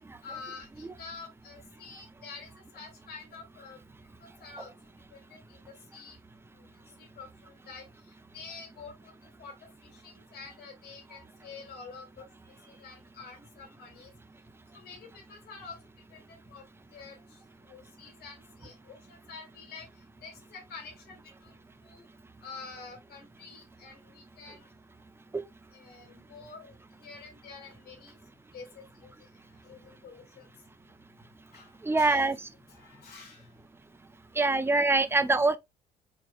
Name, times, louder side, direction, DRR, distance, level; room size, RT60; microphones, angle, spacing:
voice 1, 0.2-3.8 4.2-4.7 5.1-5.6 5.9-6.2 6.5-6.7 7.0-14.1 14.7-15.8 16.1-16.7 16.9-17.4 17.6-19.9 20.2-21.5 21.8-22.0 22.4-24.7 25.7-28.2 28.5-29.1 29.5-30.5 31.5-32.3 32.7-33.5, left 4 dB, 70° left, 2.1 m, -48 dB
voice 2, 31.8-32.4 34.4-35.6, right 3 dB, 15° right, 0.6 m, -24 dB
4.6 x 4.4 x 2.3 m
cardioid pair, 110°, 17 cm